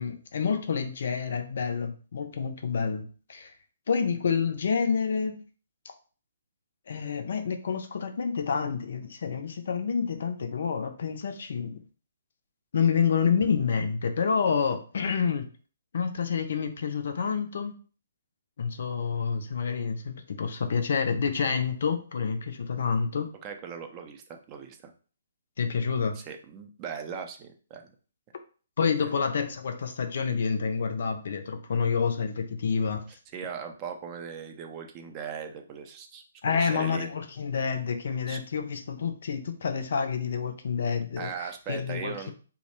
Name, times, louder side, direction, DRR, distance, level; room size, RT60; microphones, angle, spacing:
voice 1, 0.0-3.5 3.9-5.4 6.9-11.8 12.7-15.5 15.9-17.7 18.6-23.3 25.6-26.2 28.8-33.0 36.4-41.3 41.7-42.3, left 6 dB, 60° left, 0.4 m, -28 dB
voice 2, 23.4-24.9 26.1-27.9 29.0-29.1 33.1-37.1 38.3-38.4 41.2-42.3, right 6 dB, 25° right, 0.4 m, -39 dB
2.2 x 2.0 x 3.0 m
figure-of-eight pair, 130°, 0 cm